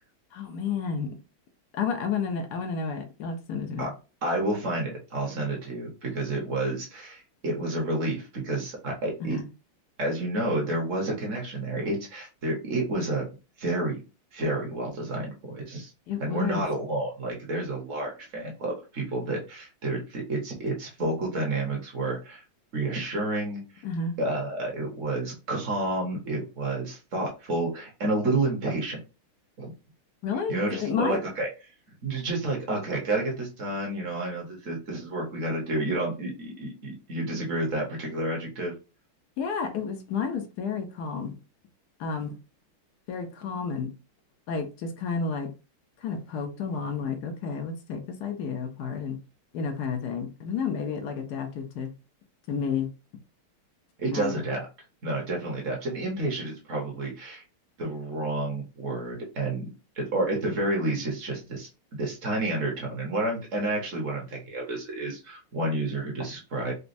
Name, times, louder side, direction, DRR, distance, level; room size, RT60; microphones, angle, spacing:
voice 1, 0.3-1.1 1.7-3.9 9.2-9.4 16.1-16.7 23.8-24.1 30.2-31.2 39.4-41.3 42.0-42.4 43.1-43.9 44.5-45.5 46.0-49.2 49.5-51.9 52.5-52.9 54.1-54.4, left 5 dB, 70° left, 1.0 m, -31 dB
voice 2, 4.2-9.4 10.0-14.0 14.3-15.9 16.2-22.4 22.7-23.6 24.2-29.0 29.6-29.7 30.5-31.5 32.0-38.8 54.0-54.6 55.0-57.4 57.8-59.7 59.9-61.7 62.0-66.7, right 2 dB, 45° right, 1.1 m, -30 dB
4.1 x 2.2 x 2.5 m
omnidirectional pair, 2.3 m